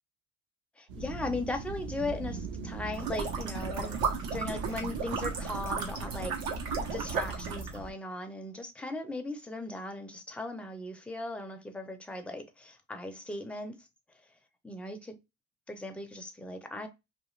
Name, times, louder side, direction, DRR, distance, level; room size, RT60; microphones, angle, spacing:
voice 1, 0.8-4.0 4.3-6.3 6.9-13.8 14.6-15.2 15.7-16.9, left 2 dB, 5° left, 0.4 m, -38 dB
sound 1, 0.9-7.9, right 4 dB, 65° right, 0.8 m, -41 dB
sound 2, 2.9-7.8, right 5 dB, 85° right, 1.0 m, -34 dB
2.4 x 2.4 x 3.0 m
cardioid pair, 110°, 35 cm